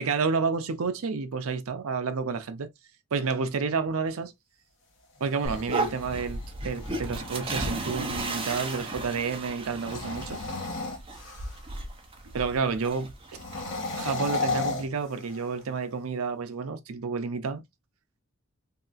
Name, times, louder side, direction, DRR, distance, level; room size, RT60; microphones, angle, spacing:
voice 1, 0.0-2.7 3.1-4.3 5.2-10.4 12.3-13.4 13.9-17.6, right 5 dB, 80° right, 0.5 m, -30 dB
sound 1, 5.2-8.9 9.7-11.7 13.3-15.6, left 3 dB, 60° left, 0.9 m, -35 dB
sound 2, 5.4-13.7, right 2 dB, 25° right, 0.6 m, -35 dB
3.1 x 2.8 x 2.4 m
head